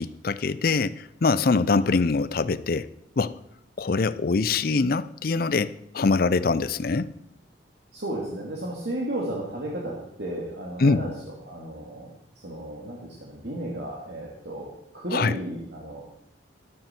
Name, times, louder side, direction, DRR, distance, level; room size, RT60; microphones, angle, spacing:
voice 1, 0.0-2.9 3.2-3.3 3.8-7.1 10.8-11.0 15.1-15.3, left 4 dB, 50° left, 16 dB, 0.5 m, -23 dB
voice 2, 7.9-11.1 11.4-12.1 12.4-14.7 14.9-16.0, right 1 dB, 60° right, -3 dB, 2.3 m, -33 dB
13.5 x 12.5 x 4.4 m, 0.72 s
head